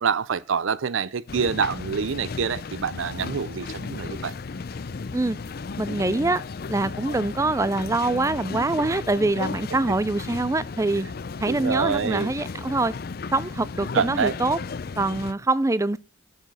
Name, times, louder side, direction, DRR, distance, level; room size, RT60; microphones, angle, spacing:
voice 1, 0.0-4.3 11.5-12.3 13.9-14.3, right 6 dB, 80° right, 0.5 m, -26 dB
sound 1, 1.3-15.3, left 4 dB, 50° left, 0.5 m, -34 dB
voice 2, 5.8-6.4 6.7-11.1 11.4-12.9 13.3-14.6 15.0-16.0, right 2 dB, 15° right, 0.4 m, -24 dB
8.9 x 7.9 x 6.2 m
head